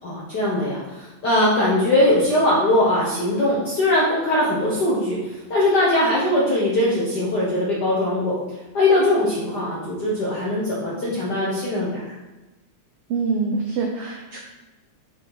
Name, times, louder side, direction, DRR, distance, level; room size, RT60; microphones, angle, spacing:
voice 1, 0.0-8.4 8.7-12.1, left 1 dB, 60° left, -6 dB, 1.1 m, -21 dB
voice 2, 13.1-14.4, right 4 dB, 90° right, 1 dB, 1.2 m, -25 dB
6.0 x 4.4 x 4.8 m, 1.1 s
omnidirectional pair, 3.4 m